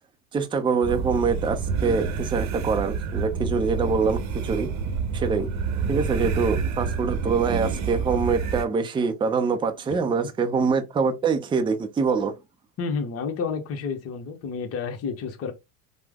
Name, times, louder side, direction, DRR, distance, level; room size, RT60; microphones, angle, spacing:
voice 1, 0.3-4.7 5.1-5.5 5.9-12.3, right 5 dB, 15° right, 0.4 m, -24 dB
sound 1, 0.8-8.6, right 5 dB, 45° right, 0.8 m, -28 dB
voice 2, 12.8-15.5, left 5 dB, 40° left, 0.8 m, -30 dB
3.2 x 2.0 x 3.4 m
supercardioid pair, 100°, 39 cm